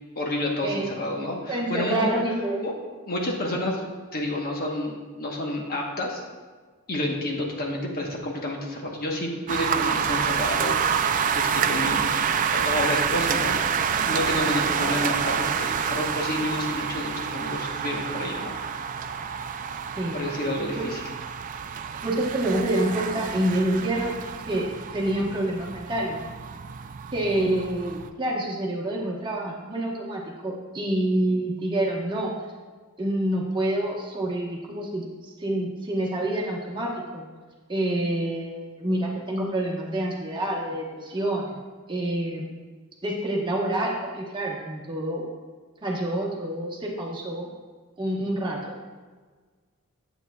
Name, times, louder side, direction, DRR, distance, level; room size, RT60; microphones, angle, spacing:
voice 1, 0.2-2.2 2.6-2.7 3.1-3.8 4.1-6.2 6.9-13.6 14.0-18.5 20.1-21.0, left 1 dB, 45° left, 0 dB, 1.1 m, -29 dB
voice 2, 1.5-2.6 14.6-14.9 19.9-20.2 20.7-20.9 22.0-24.1 24.5-26.2 27.1-32.3 33.0-37.3 37.7-41.6 41.9-42.5 43.0-45.2 45.8-47.5 48.0-48.8, right 1 dB, 20° right, -2 dB, 1.1 m, -27 dB
sound 1, 9.5-28.1, right 7 dB, 35° right, 0.3 m, -28 dB
9.8 x 8.0 x 2.3 m, 1.4 s
head